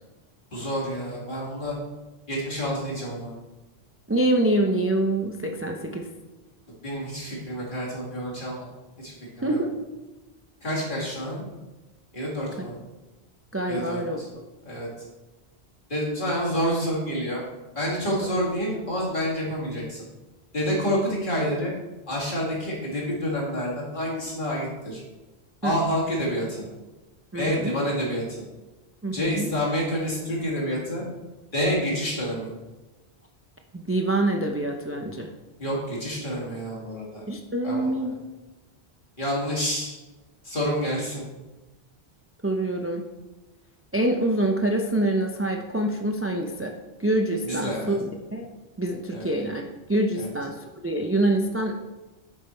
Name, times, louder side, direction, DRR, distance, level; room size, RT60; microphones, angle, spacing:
voice 1, 0.5-1.7 2.3-3.3 6.8-8.7 9.0-9.6 10.6-11.4 12.1-12.8 13.7-14.3 14.6-14.9 15.9-17.4 17.8-20.0 20.5-21.7 22.1-25.0 25.6-26.7 27.3-28.4 29.1-31.0 31.5-32.5 35.6-37.2 37.6-38.0 39.2-39.9 40.4-41.2 47.4-48.0 49.1-49.3 50.2-50.3, equal, 50° left, -5 dB, 2.4 m, -28 dB
voice 2, 4.1-6.1 9.4-9.7 12.6-12.7 13.5-14.2 25.6-25.7 27.3-27.7 29.0-29.5 33.7-35.3 37.3-38.1 42.4-43.0 43.9-46.7 47.0-48.5 48.8-49.6 49.9-51.7, right 1 dB, 20° right, 2 dB, 0.3 m, -25 dB
7.7 x 5.4 x 4.4 m, 1.1 s
omnidirectional pair, 1.1 m